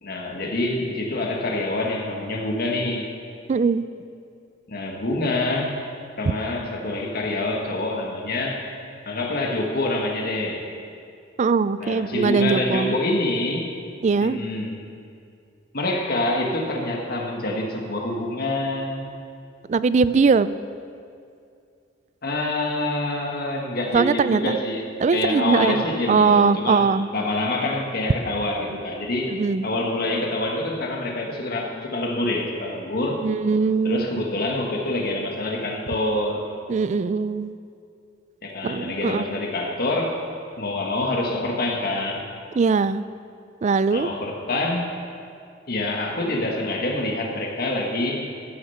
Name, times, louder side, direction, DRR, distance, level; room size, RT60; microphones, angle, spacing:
voice 1, 0.0-3.1 4.7-5.7 6.2-8.6 9.0-10.6 11.8-13.7 14.2-14.7 15.7-19.2 22.2-26.8 27.1-29.3 29.6-33.2 33.8-36.4 38.4-40.2 40.6-42.2 43.9-44.9 45.7-48.2, left 2 dB, 50° left, 0 dB, 1.6 m, -26 dB
voice 2, 3.5-3.8 11.4-12.9 14.0-14.4 19.7-20.6 23.9-24.6 25.0-27.1 29.3-29.7 33.2-34.3 36.7-37.5 38.6-39.3 42.6-43.0 43.6-44.1, right 5 dB, 35° right, 15 dB, 0.3 m, -21 dB
14.5 x 6.7 x 5.7 m, 2.4 s
head